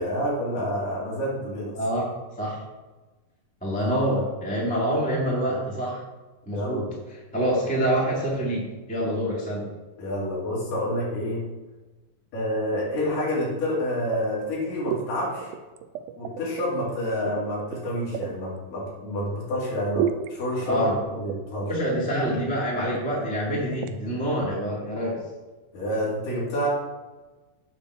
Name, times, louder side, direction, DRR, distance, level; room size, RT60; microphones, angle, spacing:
voice 1, 0.0-1.7 6.5-6.9 10.0-11.4 12.3-15.5 16.2-21.7 25.7-26.7, equal, 60° left, -5 dB, 3.9 m, -28 dB
voice 2, 1.7-2.6 3.6-6.0 6.4-9.6 20.6-20.9 21.7-25.2, equal, 10° left, -5 dB, 0.5 m, -26 dB
sound 1, 14.1-14.6 14.8-15.1 15.4-16.7 17.3-18.4 20.0-20.3 21.3-21.7 22.0-22.2 22.5-22.6 22.8-23.0 23.7-24.0, right 10 dB, 80° right, 2.1 m, -31 dB
8.6 x 4.1 x 6.4 m, 1.2 s
omnidirectional pair, 4.6 m